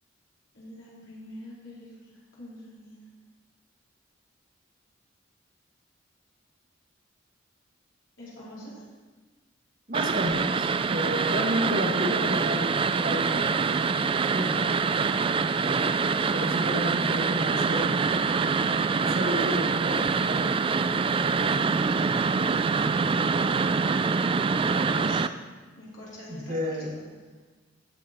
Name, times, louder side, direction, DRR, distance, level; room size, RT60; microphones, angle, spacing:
voice 1, 0.5-3.0 8.2-8.9 24.5-25.5 25.7-27.0, left 1 dB, 75° left, -8 dB, 3.8 m, -43 dB
sound 1, 9.9-25.3, right 5 dB, 25° right, 0.3 m, -25 dB
voice 2, 9.9-13.8 14.3-14.7 15.6-16.0 16.3-18.0 19.0-21.6 26.3-26.9, equal, 45° right, 1 dB, 1.6 m, -32 dB
14.0 x 7.4 x 4.3 m, 1.3 s
head